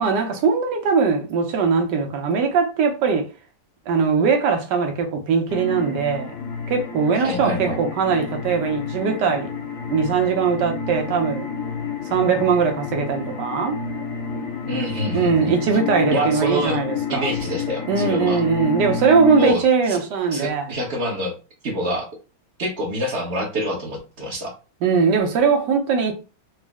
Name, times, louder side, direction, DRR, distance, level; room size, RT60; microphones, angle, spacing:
voice 1, 0.0-3.3 3.9-6.3 6.7-9.5 9.9-11.5 12.1-13.8 15.1-17.3 17.9-20.7 24.8-26.1, right 5 dB, 65° right, 1.3 m, -20 dB
sound 1, 5.5-19.5, left 5 dB, 70° left, 1.0 m, -30 dB
voice 2, 7.2-7.8 14.7-15.5 16.1-16.8 17.1-18.4 19.4-19.6 19.9-20.0 20.3-21.3 21.6-22.1 22.6-24.5, equal, 45° right, 1.0 m, -26 dB
4.1 x 2.1 x 3.4 m
omnidirectional pair, 2.1 m